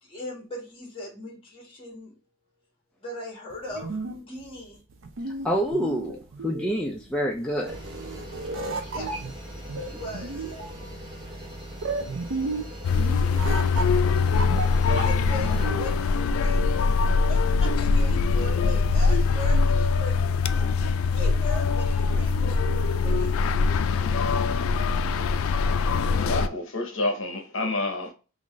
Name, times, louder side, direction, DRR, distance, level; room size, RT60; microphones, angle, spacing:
voice 1, 0.0-2.1 3.0-4.8 8.9-9.3 9.9-10.6 12.4-12.5 14.5-20.7 21.1-23.3, left 1 dB, 25° left, 1.5 m, -39 dB
sound 1, 3.5-16.0, right 3 dB, 75° right, 0.5 m, -34 dB
voice 2, 5.4-7.8 8.8-9.2, equal, 5° left, 0.3 m, -28 dB
sound 2, 7.7-15.7, equal, 25° right, 0.7 m, -40 dB
sound 3, 12.8-26.5, left 4 dB, 90° left, 0.3 m, -23 dB
voice 3, 26.2-28.1, left 2 dB, 65° left, 0.8 m, -29 dB
3.8 x 2.5 x 3.1 m
head